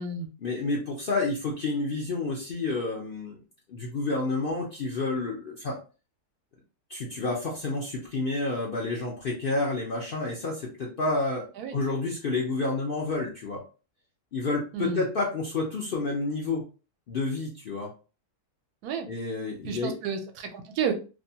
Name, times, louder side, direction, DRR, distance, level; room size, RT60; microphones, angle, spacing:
voice 1, 0.4-3.4 3.7-5.8 6.9-11.5 11.7-13.6 14.3-16.6 17.1-17.9 19.1-19.9, left 3 dB, 60° left, -3 dB, 0.6 m, -29 dB
voice 2, 14.7-15.0 18.8-19.1 19.6-20.9, right 6 dB, 80° right, 6 dB, 1.1 m, -31 dB
2.7 x 2.2 x 2.7 m, 0.33 s
omnidirectional pair, 1.6 m